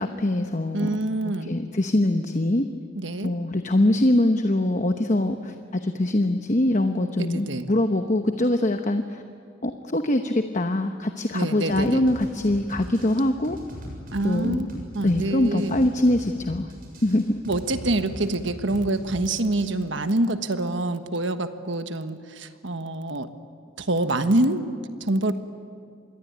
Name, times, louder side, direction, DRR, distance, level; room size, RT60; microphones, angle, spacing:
voice 1, 0.0-0.9 1.4-2.7 3.2-9.2 9.6-13.6 14.2-14.8 15.0-16.7 17.0-17.2, left 1 dB, 40° left, 6 dB, 1.0 m, -23 dB
voice 2, 0.7-1.5 2.9-3.3 7.2-7.7 11.3-12.0 14.1-14.7 14.9-15.7 17.5-23.3 23.8-24.6 25.0-25.3, right 2 dB, 65° right, 9 dB, 1.4 m, -26 dB
sound 1, 11.7-19.7, equal, 45° right, 7.2 m, -39 dB
26.5 x 21.5 x 9.6 m, 2.3 s
head